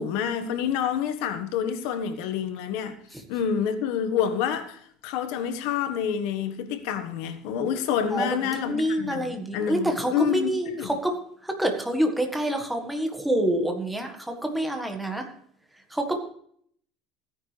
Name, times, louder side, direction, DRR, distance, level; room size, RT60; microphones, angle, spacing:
voice 1, 0.0-3.0 3.3-10.9, left 8 dB, 70° left, 1.4 m, -28 dB
voice 2, 8.1-11.2 11.4-15.3 15.9-16.2, right 1 dB, 5° right, 1.7 m, -27 dB
16.0 x 9.9 x 3.4 m
cardioid pair, 150°, 0 cm